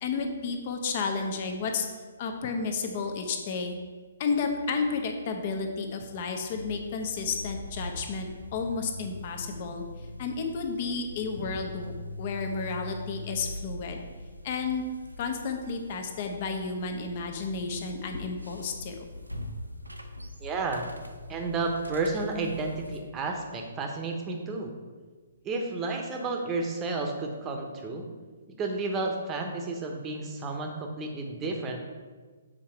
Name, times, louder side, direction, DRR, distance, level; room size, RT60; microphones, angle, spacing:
voice 1, 0.0-1.9 2.2-3.8 4.2-9.8 10.2-14.0 14.4-14.9 15.2-19.0, left 4 dB, 40° left, 4 dB, 1.0 m, -32 dB
sound 1, 6.5-23.0, left 1 dB, 90° right, 0.7 m, -42 dB
voice 2, 20.4-20.9 21.3-24.7 25.4-28.1 28.6-31.8, right 3 dB, 20° right, 2 dB, 1.0 m, -31 dB
7.5 x 4.7 x 4.4 m, 1.4 s
figure-of-eight pair, 130°, 0 cm